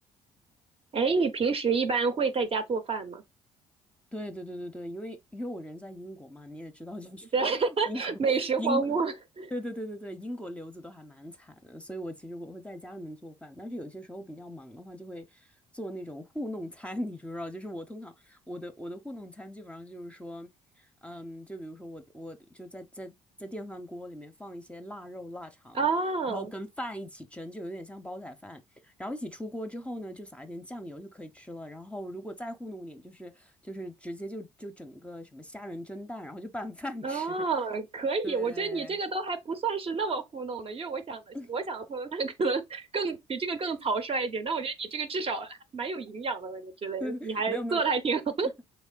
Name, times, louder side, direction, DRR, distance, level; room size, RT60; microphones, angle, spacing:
voice 1, 0.9-3.2 7.3-9.5 25.7-26.5 37.0-48.5, right 4 dB, 40° right, 0.7 m, -29 dB
voice 2, 4.1-7.3 7.7-9.0 9.5-15.5 15.7-20.5 20.8-23.1 23.4-25.9 26.3-37.4 38.2-39.0 41.3-41.5 47.0-47.8 48.4-48.5, equal, 10° left, 0.6 m, -40 dB
3.5 x 3.2 x 2.2 m
hypercardioid pair, 55°, 15 cm